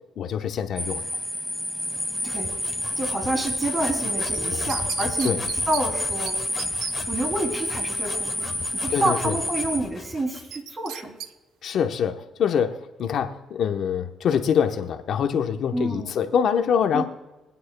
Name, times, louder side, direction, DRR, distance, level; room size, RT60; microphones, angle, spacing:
voice 1, 0.2-1.0 4.5-4.6 5.2-5.4 8.9-9.4 11.6-17.0, left 7 dB, 70° left, 6 dB, 1.0 m, -24 dB
sound 1, 0.8-9.8, equal, 10° right, 2.0 m, -29 dB
sound 2, 1.9-10.5, left 4 dB, 40° left, 1.6 m, -39 dB
voice 2, 2.2-6.7 7.1-8.5 8.8-11.1 15.7-16.1 16.9-17.0, right 1 dB, 30° right, 3 dB, 3.1 m, -29 dB
sound 3, 4.3-5.8 6.3-6.4 6.6-6.9 10.5-11.3 11.7-11.8, right 10 dB, 90° right, 0.5 m, -35 dB
23.5 x 9.3 x 2.3 m, 1.1 s
cardioid pair, 90°, 0 cm